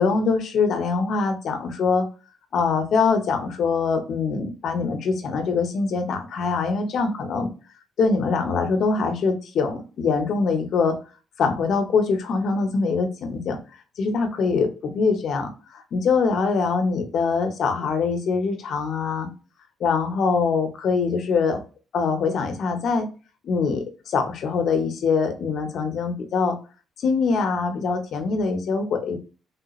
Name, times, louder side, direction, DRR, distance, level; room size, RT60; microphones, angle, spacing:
voice 1, 0.0-2.0 2.5-7.5 8.0-11.0 11.4-13.6 14.0-19.3 19.8-21.6 21.9-23.1 23.4-26.6 27.0-29.2, left 4 dB, 65° left, 6 dB, 0.8 m, -23 dB
3.3 x 2.9 x 2.4 m, 0.34 s
cardioid pair, 90°, 0 cm